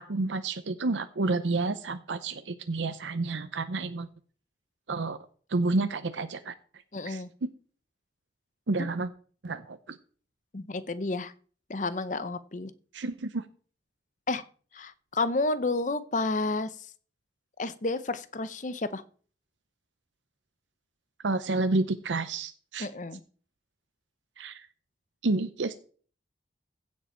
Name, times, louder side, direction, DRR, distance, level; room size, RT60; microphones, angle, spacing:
voice 1, 0.0-4.1 4.9-5.2 5.5-6.5 7.1-7.5 8.7-9.1 9.4-10.0 12.9-13.4 21.2-22.9 24.4-24.7 25.2-25.8, right 3 dB, 90° right, 10 dB, 0.7 m, -30 dB
voice 2, 6.9-7.3 10.5-11.3 11.7-12.7 14.3-14.4 14.7-16.7 17.6-19.0 22.8-23.2, left 3 dB, 45° left, 14 dB, 0.7 m, -30 dB
15.5 x 7.5 x 4.4 m, 0.43 s
head